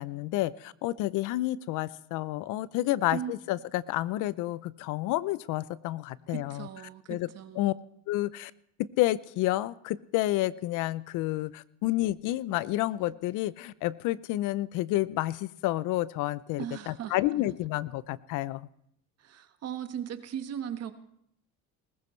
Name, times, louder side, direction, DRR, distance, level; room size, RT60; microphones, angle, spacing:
voice 1, 0.0-6.7 7.1-7.3 7.6-7.7 8.1-8.5 9.0-18.7, left 16 dB, 70° left, 19 dB, 0.6 m, -30 dB
voice 2, 3.1-3.5 6.3-7.7 16.6-17.1 19.2-20.9, right 9 dB, 50° right, 9 dB, 1.3 m, -38 dB
19.5 x 15.0 x 3.2 m, 0.71 s
supercardioid pair, 95°, 32 cm